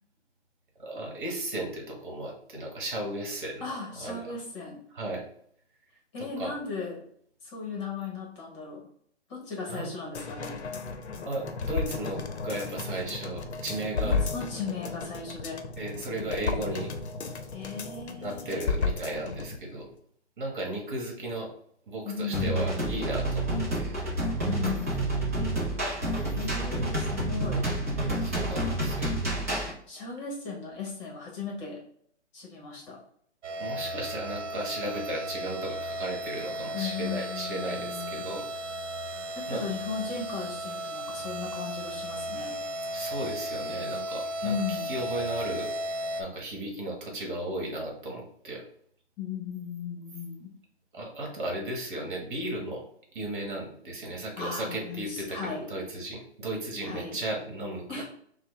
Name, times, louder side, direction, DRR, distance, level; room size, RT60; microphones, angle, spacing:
voice 1, 0.8-3.6 4.0-4.3 4.9-5.2 6.2-6.5 9.7-9.9 11.2-14.2 15.8-16.9 18.2-19.9 20.4-21.5 21.9-23.9 25.3-25.5 28.2-29.1 33.6-38.5 39.5-39.6 42.9-45.7 46.2-48.6 50.9-52.8 53.1-58.0, right 1 dB, 45° right, 0 dB, 1.4 m, -35 dB
voice 2, 3.6-4.8 6.1-7.0 7.4-8.9 9.3-10.6 14.0-15.6 17.5-18.6 22.0-23.1 24.4-25.2 26.3-27.6 29.9-31.8 32.3-33.0 36.7-38.3 39.3-42.5 44.4-45.0 49.2-50.5 54.4-55.7 56.8-57.2 57.9-58.0, left 5 dB, 25° left, -1 dB, 1.0 m, -36 dB
sound 1, 10.1-19.6 19.9-20.0, left 4 dB, 70° left, 0.7 m, -33 dB
sound 2, 22.3-29.7, right 1 dB, 15° right, 0.4 m, -29 dB
sound 3, 33.4-46.2, equal, 85° right, 0.8 m, -35 dB
5.7 x 2.2 x 3.2 m, 0.64 s
hypercardioid pair, 150°, 35 cm